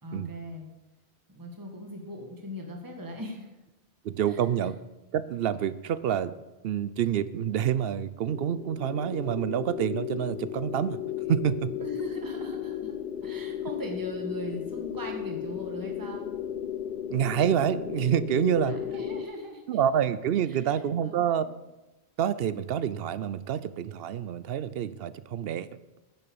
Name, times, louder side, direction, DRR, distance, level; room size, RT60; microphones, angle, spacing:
voice 1, 0.0-0.7 1.3-3.5 4.3-4.4 11.8-12.9 13.2-16.3 18.6-19.6 20.5-21.5, equal, 20° right, 1 dB, 1.4 m, -39 dB
voice 2, 4.0-4.8 5.1-6.3 6.6-11.0 11.3-11.7 17.1-18.8 19.7-21.5 22.2-25.7, right 9 dB, 65° right, 15 dB, 0.8 m, -27 dB
sound 1, 8.3-19.2, left 10 dB, 65° left, 0.8 m, -35 dB
10.0 x 6.9 x 6.9 m, 1.0 s
omnidirectional pair, 1.1 m